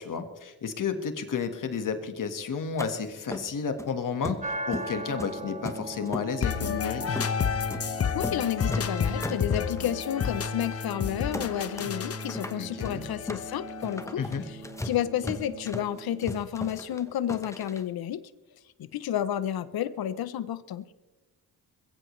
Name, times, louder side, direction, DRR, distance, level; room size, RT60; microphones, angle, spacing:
voice 1, 0.0-7.2 12.6-13.0 14.2-14.4, left 6 dB, 55° left, 8 dB, 1.7 m, -32 dB
sound 1, 2.8-2.9 3.3-3.9 4.2-4.9 5.2-6.3 6.6-6.8 7.2-7.3 7.7-7.9 8.1-8.4 8.7-9.9 10.3-10.4 10.7-10.9 11.3-11.9 12.2-17.8, left 1 dB, 10° left, 1.1 m, -37 dB
sound 2, 4.4-16.4, right 2 dB, 20° right, 1.6 m, -41 dB
sound 3, 6.4-14.2, left 7 dB, 40° left, 0.9 m, -31 dB
voice 2, 8.1-14.6 14.8-18.2 18.8-20.9, left 10 dB, 70° left, 15 dB, 0.8 m, -31 dB
21.5 x 15.0 x 3.2 m, 1.1 s
cardioid pair, 95°, 37 cm